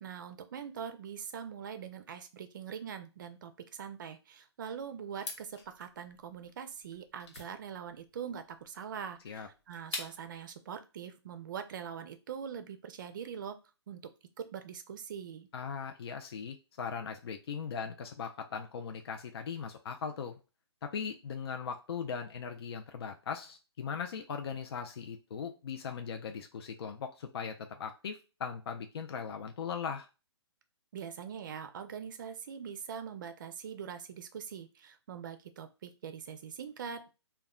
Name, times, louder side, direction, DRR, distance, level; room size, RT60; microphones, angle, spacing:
voice 1, 0.0-13.6 13.9-14.1 14.4-15.5 30.9-37.1, right 7 dB, 45° right, 9 dB, 0.5 m, -43 dB
sound 1, 5.1-10.4, left 3 dB, 75° left, 1.0 m, -46 dB
voice 2, 15.5-20.4 20.8-30.1, left 6 dB, 60° left, 5 dB, 0.4 m, -39 dB
2.2 x 2.0 x 3.6 m, 0.30 s
hypercardioid pair, 160°, 15 cm